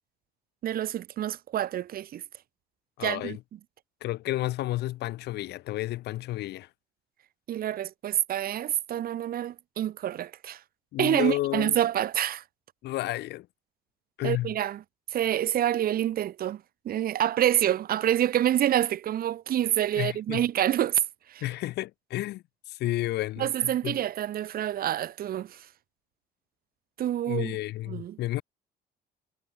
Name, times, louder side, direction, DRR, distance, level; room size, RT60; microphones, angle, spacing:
voice 1, 0.6-2.2 3.0-3.4 7.5-10.6 11.0-12.4 14.2-14.8 15.1-21.0 21.3-21.4 23.4-25.6 27.0-27.5 27.9-28.2, right 11 dB, 60° right, 4.5 m, -27 dB
voice 2, 3.0-3.4 4.0-6.7 10.9-11.8 12.8-13.5 14.2-14.6 20.0-20.5 21.4-24.0 27.3-28.4, left 16 dB, 80° left, 5.4 m, -31 dB
cardioid pair, 110°, 17 cm